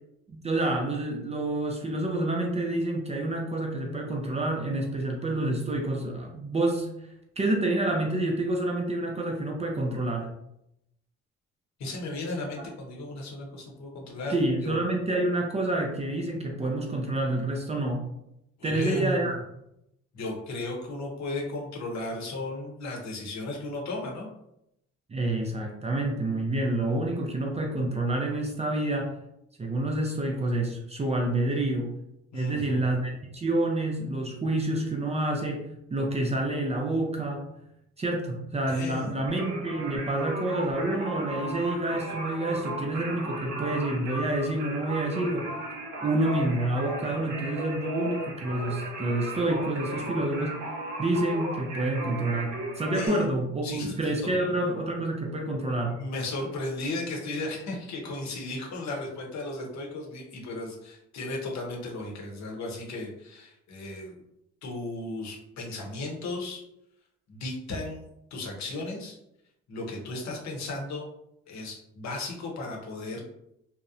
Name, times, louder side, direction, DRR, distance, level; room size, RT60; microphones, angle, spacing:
voice 1, 0.3-6.9 7.4-10.3 14.3-18.1 18.6-19.3 25.1-29.1 29.6-31.9 32.3-35.6 35.9-37.5 38.0-45.5 46.0-50.6 51.0-56.0, right 1 dB, 20° right, 1 dB, 0.4 m, -28 dB
voice 2, 11.8-14.4 14.6-14.8 18.6-19.4 20.1-24.3 32.3-32.8 38.7-39.2 52.9-53.3 53.6-53.9 54.2-54.3 55.9-64.2 64.6-66.6 67.3-68.0 68.3-69.2 69.7-71.1 71.5-73.2, left 2 dB, 65° left, 0 dB, 0.8 m, -35 dB
Singing, 39.3-53.1, right 1 dB, 75° right, 0.8 m, -36 dB
2.6 x 2.0 x 2.4 m, 0.81 s
cardioid pair, 90°, 30 cm